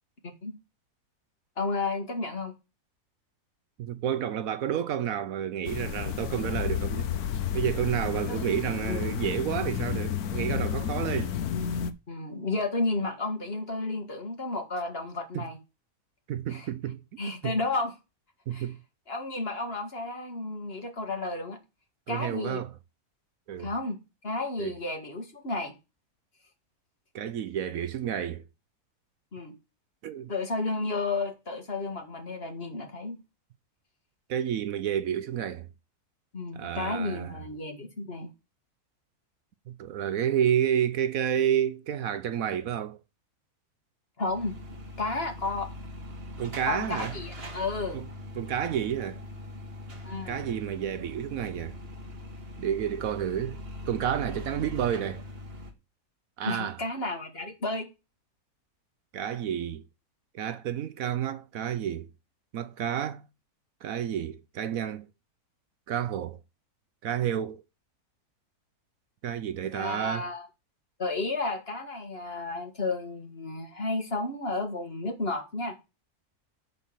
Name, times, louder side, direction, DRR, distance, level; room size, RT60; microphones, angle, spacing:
voice 1, 1.6-2.5 8.3-8.5 8.9-9.2 12.1-15.6 16.5-16.7 17.2-17.9 18.5-18.7 19.1-21.6 22.1-22.7 23.6-24.0 24.2-25.7 29.3-29.5 30.3-33.2 36.3-38.3 44.2-44.6 45.0-45.7 46.7-48.0 50.0-50.4 56.4-57.9 69.7-70.5 71.0-75.8, left 3 dB, 40° left, 2.0 m, -32 dB
voice 2, 3.8-7.1 7.5-11.3 15.3-15.5 16.3-17.0 17.4-17.6 18.5-18.8 22.1-22.7 23.5-23.7 24.6-24.7 27.1-28.4 30.0-30.3 34.3-35.7 36.5-37.4 39.7-43.0 46.4-47.1 47.9-48.1 48.4-49.2 50.3-51.7 52.6-55.2 56.4-56.8 59.1-59.8 60.3-62.1 62.5-63.2 63.8-65.0 65.9-66.4 67.0-67.6 69.2-70.3, right 9 dB, 70° right, 1.0 m, -30 dB
sound 1, 5.7-11.9, left 9 dB, 75° left, 1.3 m, -31 dB
sound 2, 44.2-55.7, left 1 dB, 40° right, 1.9 m, -41 dB
11.0 x 4.2 x 7.4 m
omnidirectional pair, 1.6 m